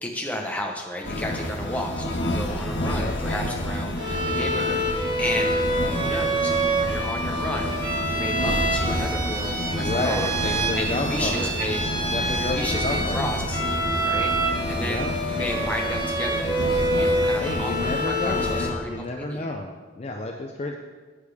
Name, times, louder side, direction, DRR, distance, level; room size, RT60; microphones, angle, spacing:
voice 1, 0.0-5.6 5.9-10.3 10.7-11.8 12.3-13.6 14.0-14.4 14.7-16.5 16.9-19.6, left 1 dB, 5° left, 0 dB, 1.0 m, -33 dB
sound 1, 1.0-18.7, left 1 dB, 70° left, 1.5 m, -29 dB
Bowed string instrument, 4.0-18.8, right 1 dB, 20° right, 1.0 m, -27 dB
voice 2, 9.8-11.5 11.9-13.2 14.8-15.1 17.4-20.8, left 2 dB, 30° left, 2 dB, 0.5 m, -30 dB
9.9 x 8.3 x 3.5 m, 1.4 s
head